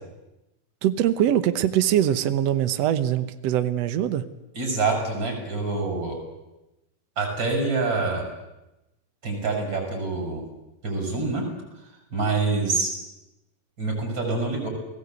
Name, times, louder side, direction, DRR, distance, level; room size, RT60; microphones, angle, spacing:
voice 1, 0.8-4.2, right 11 dB, 90° right, 11 dB, 1.4 m, -22 dB
voice 2, 4.5-6.2 7.2-8.3 9.2-10.4 10.8-11.5 12.1-12.9 13.8-14.7, right 3 dB, 25° right, 2 dB, 7.9 m, -26 dB
29.5 x 20.0 x 8.2 m, 0.96 s
omnidirectional pair, 4.5 m